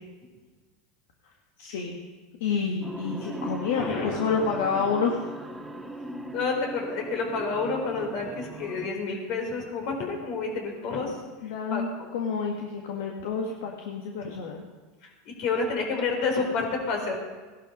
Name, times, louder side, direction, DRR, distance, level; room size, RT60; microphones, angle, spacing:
voice 1, 1.6-2.0 2.4-5.2 11.4-14.7, left 5 dB, 80° left, 1 dB, 1.8 m, -29 dB
sound 1, 2.8-8.9, right 2 dB, 5° right, 1.7 m, -38 dB
voice 2, 3.8-4.5 6.3-11.2 11.7-11.8 14.2-14.3 15.0-17.2, left 4 dB, 60° left, 2 dB, 4.5 m, -29 dB
17.5 x 11.5 x 5.4 m, 1.3 s
supercardioid pair, 105°, 0 cm